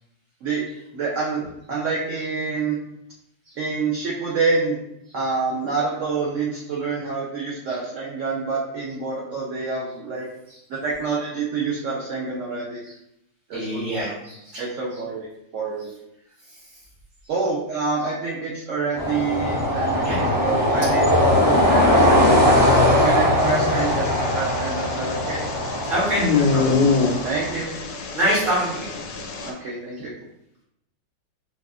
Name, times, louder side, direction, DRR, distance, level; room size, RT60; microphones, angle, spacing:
voice 1, 0.9-1.4 1.7-2.8 3.6-4.8 5.1-10.3 10.7-12.8 13.5-13.8 14.1-14.2 14.6-15.3 15.5-15.9 17.3-21.1 21.4-22.8 23.0-25.4 27.2-27.7 29.5-30.1, right 4 dB, 85° right, -4 dB, 0.6 m, -27 dB
voice 2, 13.5-14.6 20.0-20.2 25.9-26.8 28.1-28.9, equal, 60° right, -8 dB, 2.2 m, -25 dB
sound 1, 19.0-27.5, left 1 dB, 20° left, 0.6 m, -20 dB
sound 2, 23.4-29.5, left 4 dB, 75° left, 1.3 m, -26 dB
4.9 x 2.4 x 2.4 m, 0.81 s
omnidirectional pair, 2.0 m